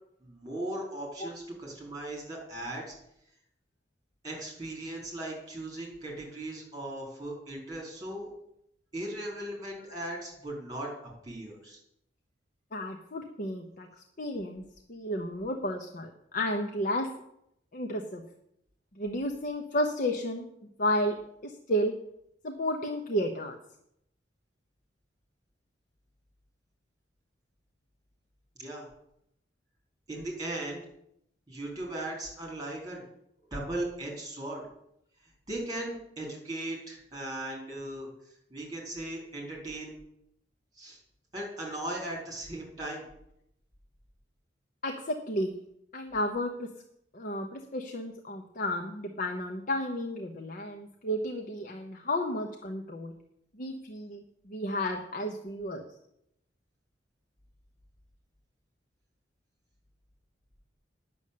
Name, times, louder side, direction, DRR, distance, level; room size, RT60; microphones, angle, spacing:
voice 1, 0.2-2.9 4.2-8.3 8.9-11.8 28.6-28.9 30.1-30.8 31.5-33.0 33.5-34.6 35.5-38.1 38.5-40.0 40.8-41.0 41.3-43.1, right 1 dB, 20° right, -1 dB, 4.6 m, -38 dB
voice 2, 12.7-13.9 14.2-14.6 14.9-17.1 17.7-18.2 19.0-20.5 20.8-21.2 21.4-21.9 22.4-23.6 44.8-45.6 45.9-46.7 47.1-53.1 53.5-55.8, equal, 50° left, 3 dB, 1.0 m, -32 dB
9.6 x 7.0 x 8.6 m, 0.77 s
head